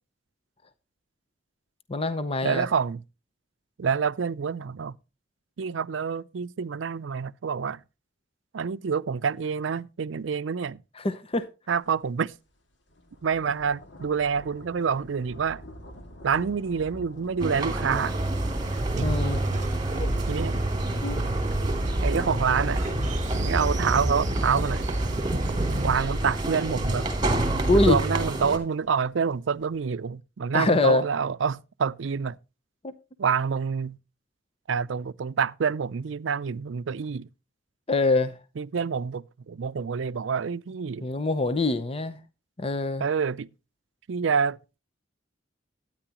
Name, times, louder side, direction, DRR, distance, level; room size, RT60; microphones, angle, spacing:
voice 1, 1.9-2.7 11.0-11.5 19.0-19.4 20.0-20.1 21.0-21.2 27.7-28.0 30.5-31.0 37.9-38.3 41.0-42.2 42.6-43.0, left 3 dB, 30° left, 0.7 m, -24 dB
voice 2, 2.4-3.0 3.8-5.0 5.6-7.8 8.5-10.8 11.7-12.3 13.2-15.6 16.2-18.2 18.9-19.1 20.3-20.6 22.0-22.9 23.3-24.8 25.8-27.1 27.7-32.4 33.2-34.0 34.7-37.3 38.6-41.1 43.0-43.5 44.1-44.6, right 6 dB, 80° right, 0.5 m, -27 dB
sound 1, 12.0-12.1 12.5-29.8, equal, 65° left, 2.2 m, -48 dB
sound 2, 17.4-28.6, right 2 dB, 25° right, 2.6 m, -29 dB
Train, 17.9-27.9, right 1 dB, 40° right, 1.1 m, -30 dB
12.5 x 9.8 x 2.9 m
head